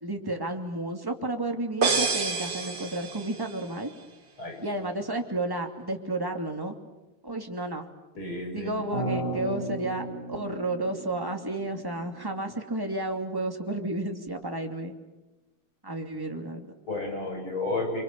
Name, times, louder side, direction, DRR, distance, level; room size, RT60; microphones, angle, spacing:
voice 1, 0.0-3.9 4.6-6.8 7.2-7.9 8.5-14.9 15.8-16.7, right 2 dB, 10° right, 3 dB, 2.6 m, -32 dB
sound 1, 1.8-3.6, right 4 dB, 60° right, 3.3 m, -28 dB
voice 2, 8.2-8.9 16.9-18.0, left 2 dB, 75° left, 2 dB, 7.6 m, -32 dB
sound 2, 8.9-13.1, right 2 dB, 30° left, 6.9 m, -36 dB
30.0 x 25.0 x 7.1 m, 1.1 s
omnidirectional pair, 2.3 m